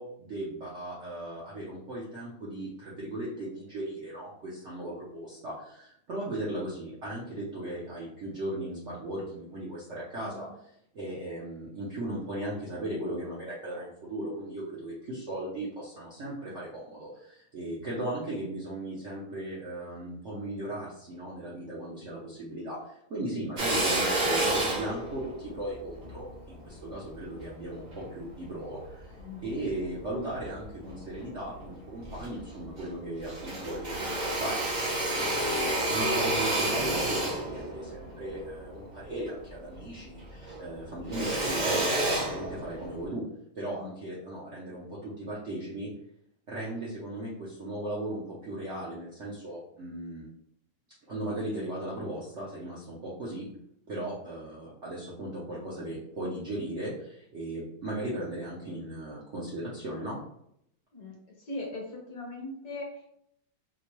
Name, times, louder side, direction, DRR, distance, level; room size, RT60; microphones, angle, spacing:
voice 1, 0.0-29.1 29.4-43.2 43.5-45.9 46.5-50.3 51.1-53.5 53.9-60.2, right 1 dB, 60° right, -6 dB, 0.7 m, -37 dB
Drill, 23.6-28.1 28.7-29.8 30.3-31.2 31.6-31.7 32.0-33.0 33.2-39.9 40.2-43.0, right 1 dB, 85° right, 0.4 m, -30 dB
voice 2, 29.2-29.5 43.7-44.0 60.9-61.1 61.4-63.2, left 2 dB, 60° left, -2 dB, 1.3 m, -40 dB
4.3 x 2.2 x 3.0 m, 0.73 s
omnidirectional pair, 2.2 m